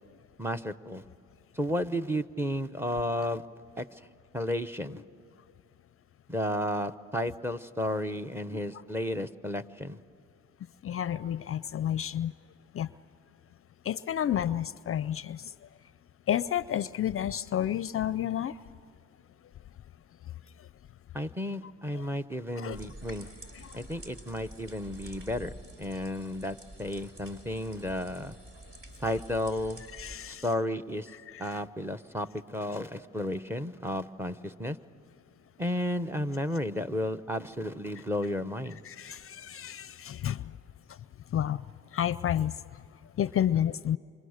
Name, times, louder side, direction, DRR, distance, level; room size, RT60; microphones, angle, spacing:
voice 1, 0.4-1.0 1.5-3.4 3.8-4.0 4.3-5.0 6.3-10.0 21.1-23.3 23.7-25.5 25.8-28.4 29.0-29.8 30.3-31.1 31.4-34.8 35.6-38.8, left 1 dB, 10° right, 12 dB, 0.9 m, -33 dB
voice 2, 10.8-12.3 12.7-12.9 13.9-15.4 16.3-18.5 22.0-22.1 22.6-22.8 30.0-30.4 31.3-31.5 38.9-40.4 41.3-41.6 41.9-42.5 43.2-44.0, left 10 dB, 45° left, 17 dB, 0.5 m, -30 dB
sound 1, 22.7-30.1, right 1 dB, 45° right, 4.2 m, -48 dB
28.5 x 25.5 x 6.5 m, 2.4 s
cardioid pair, 90°, 30 cm